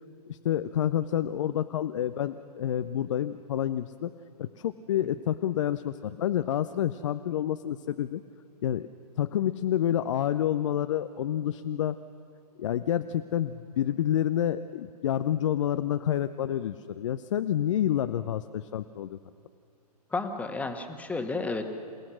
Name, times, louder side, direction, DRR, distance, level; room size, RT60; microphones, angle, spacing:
voice 1, 0.3-4.1 4.4-8.2 8.6-8.9 9.2-12.0 12.6-19.2, left 11 dB, 50° left, 11 dB, 0.6 m, -28 dB
voice 2, 20.1-21.8, left 3 dB, 5° left, 6 dB, 1.5 m, -32 dB
28.5 x 17.5 x 6.3 m, 2.8 s
figure-of-eight pair, 120°, 21 cm